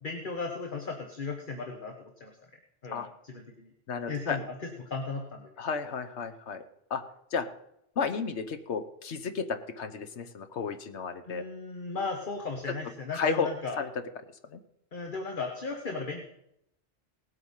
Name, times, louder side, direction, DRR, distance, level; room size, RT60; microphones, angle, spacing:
voice 1, 0.0-2.3 2.8-3.7 4.1-5.5 11.2-13.8 14.9-16.3, left 4 dB, 45° left, 3 dB, 1.5 m, -36 dB
voice 2, 3.9-4.4 5.6-6.6 6.9-7.0 7.3-7.5 8.0-9.5 9.8-11.4 13.1-13.5 13.8-13.9 14.5-14.6, left 6 dB, 75° left, 7 dB, 1.3 m, -32 dB
18.5 x 8.1 x 5.6 m, 0.79 s
omnidirectional pair, 1.2 m